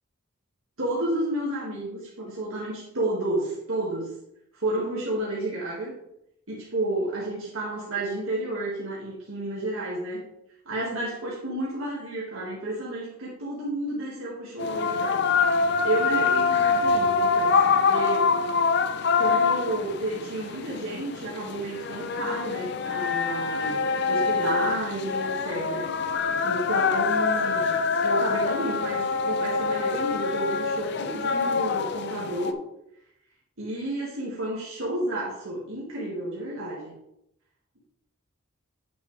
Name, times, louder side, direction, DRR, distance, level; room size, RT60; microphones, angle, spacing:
voice 1, 0.8-4.1 4.5-5.9 6.5-10.2 10.7-15.3 15.8-18.3 19.2-25.9 26.4-32.6 33.6-36.9, right 1 dB, 80° right, -6 dB, 2.0 m, -31 dB
sound 1, 14.6-32.5, left 5 dB, 55° left, 0.5 m, -25 dB
9.0 x 6.4 x 3.3 m, 0.79 s
head